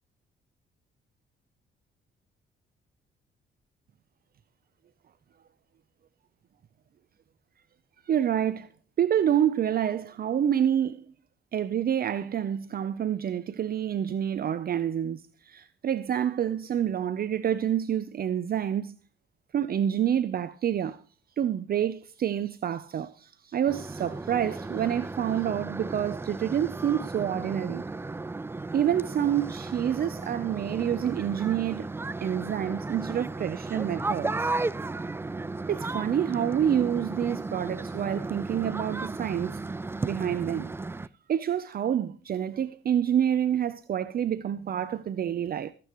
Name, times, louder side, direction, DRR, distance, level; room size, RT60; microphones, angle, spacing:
voice 1, 8.1-8.7 9.0-11.0 11.5-18.9 19.5-21.0 21.4-27.8 28.7-31.9 32.2-34.5 35.7-39.6 40.0-40.7 41.3-45.7, right 9 dB, 50° right, 0.7 m, -28 dB
sound 1, 23.7-41.1, right 3 dB, 10° right, 0.4 m, -35 dB
21.0 x 8.5 x 3.0 m
cardioid pair, 90°, 20 cm